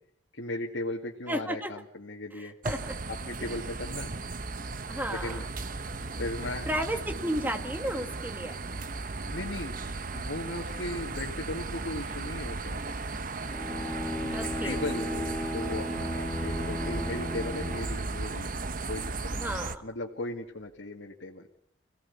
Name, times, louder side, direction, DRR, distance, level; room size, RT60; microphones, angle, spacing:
voice 1, 0.3-2.5 3.2-4.1 5.1-5.4 6.2-6.7 9.3-9.7 10.1-12.8 14.2-18.5 18.9-21.5, left 2 dB, 75° left, 0 dB, 2.1 m, -37 dB
voice 2, 1.3-1.7 2.4-2.9 3.4-3.6 4.9-5.4 6.7-8.6 14.3-14.8 19.3-19.8, equal, 10° right, 6 dB, 1.9 m, -33 dB
sound 1, 2.6-19.8, right 3 dB, 45° right, 1.0 m, -36 dB
Bowed string instrument, 13.5-18.3, left 1 dB, 5° left, 1.8 m, -35 dB
26.5 x 17.5 x 8.4 m, 0.70 s
head